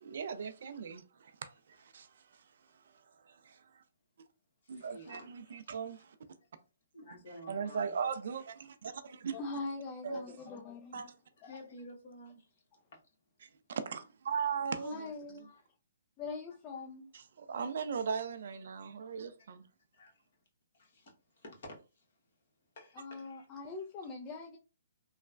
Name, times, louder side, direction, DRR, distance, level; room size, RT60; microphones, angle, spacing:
voice 1, 0.0-1.5 1.8-2.1 3.3-3.6 4.7-6.1 7.5-9.4 10.0-10.2 10.9-11.1 13.7-15.0 17.1-19.6, right 6 dB, 60° right, 0.4 m, -38 dB
voice 2, 4.6-5.6 6.9-7.9 11.4-12.5 14.9-15.6 19.4-19.5 19.9-20.1 20.7-21.1 21.4-21.8 22.8-23.5, left 1 dB, 55° left, 1.2 m, -51 dB
voice 3, 9.3-11.1 14.8-15.5 16.2-17.1 22.9-24.6, left 3 dB, 25° left, 0.4 m, -42 dB
3.1 x 2.1 x 2.4 m
hypercardioid pair, 150°, 0 cm